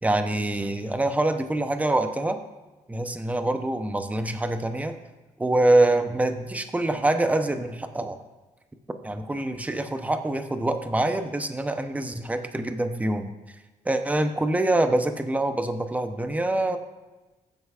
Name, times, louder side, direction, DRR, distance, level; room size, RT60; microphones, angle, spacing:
voice 1, 0.0-2.4 2.9-5.0 5.4-8.2 9.0-13.3 13.8-16.8, right 1 dB, 10° right, 7 dB, 0.7 m, -25 dB
15.5 x 7.9 x 2.4 m, 1.2 s
cardioid pair, 100°, 14 cm